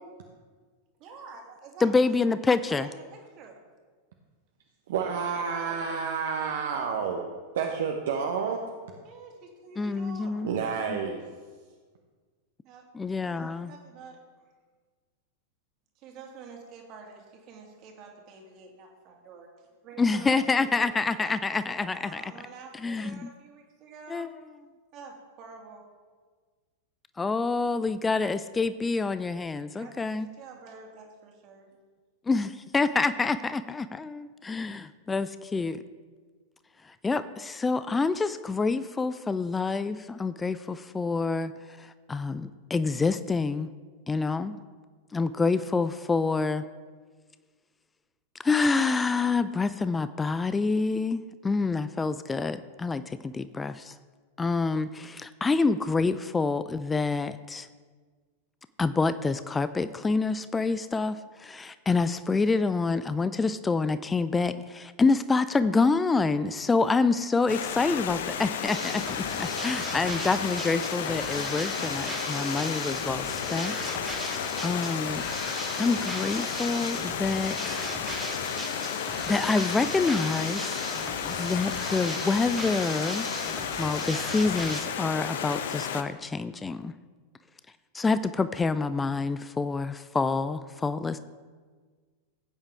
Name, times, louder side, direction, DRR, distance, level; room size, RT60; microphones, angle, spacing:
voice 1, 1.0-2.2 2.6-3.6 5.3-5.8 9.0-10.3 12.6-12.9 13.2-14.2 16.0-24.3 24.9-25.8 29.8-31.7, right 4 dB, 40° right, 1 dB, 2.2 m, -48 dB
voice 2, 1.8-2.9 9.8-10.5 13.0-13.7 20.0-22.2 22.8-23.3 24.1-24.3 27.2-30.3 32.3-35.8 37.0-41.5 41.8-43.7 44.1-44.6 45.1-46.6 48.4-53.9 54.4-57.7 58.8-75.2 75.8-77.8 79.3-80.7 81.2-83.3 83.8-86.9 87.9-91.2, left 4 dB, 15° left, 13 dB, 0.4 m, -27 dB
voice 3, 4.9-7.2 7.5-8.6 10.4-11.2, right 6 dB, 60° right, 2 dB, 1.0 m, -29 dB
Stream, 67.5-86.0, left 8 dB, 60° left, 0.7 m, -33 dB
sound 1, 68.7-84.8, right 2 dB, 10° right, 1.6 m, -38 dB
16.0 x 8.8 x 3.5 m, 1.5 s
figure-of-eight pair, 90°, 0 cm